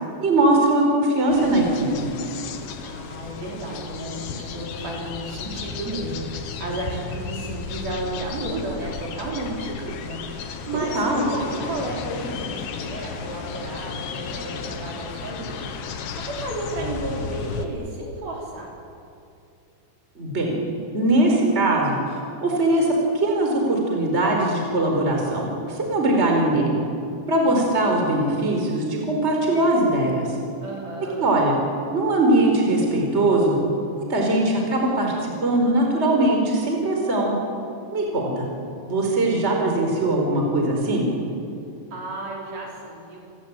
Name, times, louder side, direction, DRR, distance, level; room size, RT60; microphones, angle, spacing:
voice 1, 0.2-2.1 10.7-11.2 20.2-20.6 20.9-26.8 27.3-30.3 31.2-31.6 31.9-33.6 34.1-37.3 37.9-38.5 38.9-41.1, right 1 dB, 15° right, 1 dB, 4.5 m, -21 dB
sound 1, 1.3-17.7, left 5 dB, 75° left, 3.8 m, -34 dB
voice 2, 2.8-18.7 30.6-31.2 41.9-43.2, right 1 dB, 55° right, -2 dB, 6.7 m, -33 dB
29.0 x 19.5 x 9.0 m, 2.6 s
omnidirectional pair, 5.0 m